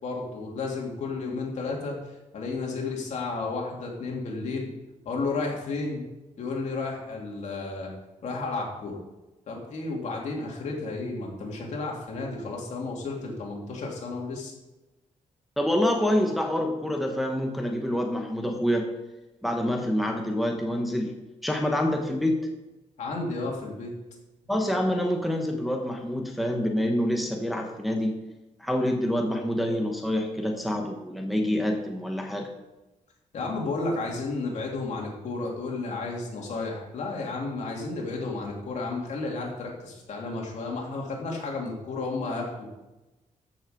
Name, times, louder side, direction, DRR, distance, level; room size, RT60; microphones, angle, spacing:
voice 1, 0.0-2.0 2.3-4.7 5.0-6.0 6.4-7.9 8.2-9.0 9.5-14.5 23.0-23.9 33.3-42.7, left 3 dB, 65° left, -1 dB, 2.8 m, -32 dB
voice 2, 15.6-18.9 19.4-21.1 21.4-22.5 24.5-28.2 28.6-32.5, left 1 dB, ahead, 1 dB, 1.0 m, -27 dB
14.0 x 6.2 x 5.1 m, 1.0 s
wide cardioid pair, 155°, 13 cm